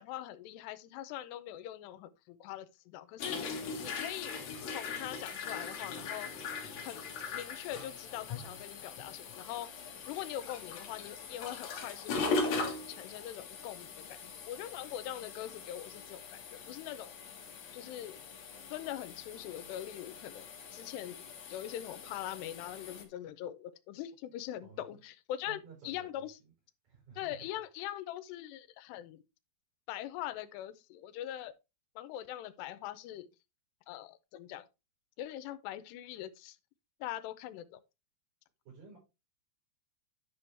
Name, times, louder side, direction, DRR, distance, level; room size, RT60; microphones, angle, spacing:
voice 1, 0.0-3.6 3.8-4.4 4.6-6.3 6.8-9.7 10.1-17.1 17.7-18.2 18.7-25.6 25.8-26.4 27.2-29.2 29.9-31.5 32.0-33.3 33.9-34.7 35.2-36.6 37.0-37.8, left 12 dB, 85° left, 2.8 m, -42 dB
sound 1, 3.2-23.0, left 4 dB, 55° left, 2.2 m, -40 dB
voice 2, 25.4-26.5 26.8-27.4 38.6-39.0, right 5 dB, 60° right, 6.6 m, -54 dB
10.5 x 5.4 x 3.4 m
omnidirectional pair, 4.7 m